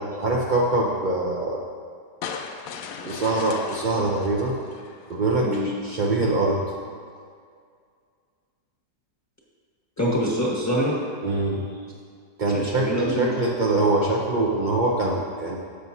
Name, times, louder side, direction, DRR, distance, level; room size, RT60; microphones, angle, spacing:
voice 1, 0.0-1.6 3.0-4.6 5.1-6.6 11.2-11.6 12.4-15.6, right 2 dB, 80° right, -3 dB, 0.4 m, -24 dB
sound 1, 2.2-5.5, left 6 dB, 70° left, 0.8 m, -37 dB
voice 2, 10.0-11.0 12.5-13.3, equal, 10° left, -6 dB, 1.3 m, -24 dB
11.0 x 7.6 x 2.7 m, 2.1 s
omnidirectional pair, 1.9 m